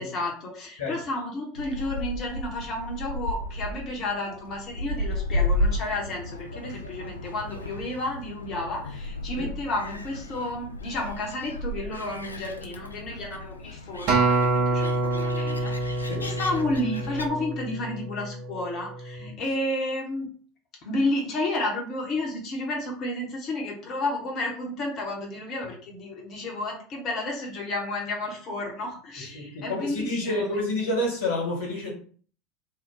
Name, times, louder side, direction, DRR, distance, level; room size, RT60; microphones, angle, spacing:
voice 1, 0.0-20.3 20.8-30.6, left 1 dB, 40° left, 0 dB, 0.8 m, -31 dB
Gull seagull, 1.5-17.3, left 1 dB, 85° left, 0.3 m, -33 dB
Acoustic guitar, 14.1-18.5 19.1-19.3, right 2 dB, 50° right, 0.8 m, -26 dB
voice 2, 29.3-31.9, left 2 dB, 65° left, -1 dB, 1.3 m, -29 dB
2.8 x 2.2 x 3.7 m, 0.43 s
figure-of-eight pair, 75°, 0 cm